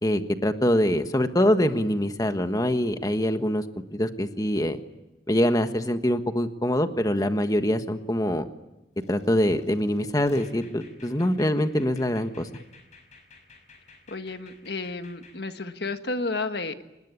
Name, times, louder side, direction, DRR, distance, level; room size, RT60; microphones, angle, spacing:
voice 1, 0.0-3.6 3.9-4.8 5.3-8.5 9.1-12.5, left 1 dB, 20° left, 8 dB, 1.4 m, -24 dB
sound 1, 9.0-15.4, left 2 dB, 45° left, 5.4 m, -52 dB
voice 2, 14.1-16.8, left 3 dB, 65° left, 8 dB, 1.6 m, -32 dB
26.5 x 21.0 x 9.8 m, 1.0 s
head